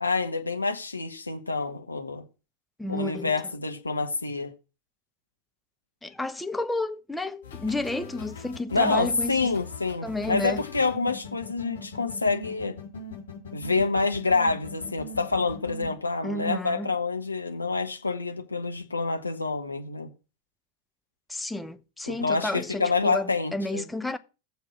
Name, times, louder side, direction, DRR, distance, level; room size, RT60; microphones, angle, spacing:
voice 1, 0.0-2.2 2.9-4.5 8.7-12.8 13.5-20.1 22.1-23.8, left 4 dB, 80° left, 1.1 m, -27 dB
voice 2, 2.8-3.3 6.0-9.5 10.0-10.6 16.2-16.9 21.3-24.2, left 2 dB, 5° left, 0.7 m, -31 dB
sound 1, 7.4-15.9, left 3 dB, 65° left, 4.0 m, -41 dB
7.3 x 5.9 x 7.3 m
figure-of-eight pair, 90°, 0 cm